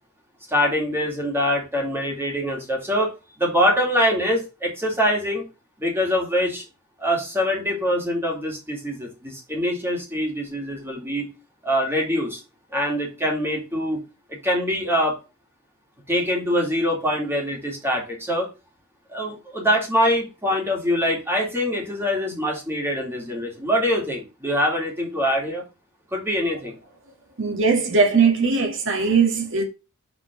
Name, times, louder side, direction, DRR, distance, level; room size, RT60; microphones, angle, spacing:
voice 1, 0.5-3.1 3.4-5.4 5.8-6.6 7.0-11.3 11.6-12.4 12.7-14.0 14.3-15.2 16.1-18.5 19.1-25.6 26.1-26.7, equal, 10° right, 2.3 m, -24 dB
voice 2, 27.4-29.6, right 5 dB, 60° right, 1.8 m, -19 dB
6.0 x 4.4 x 5.8 m
head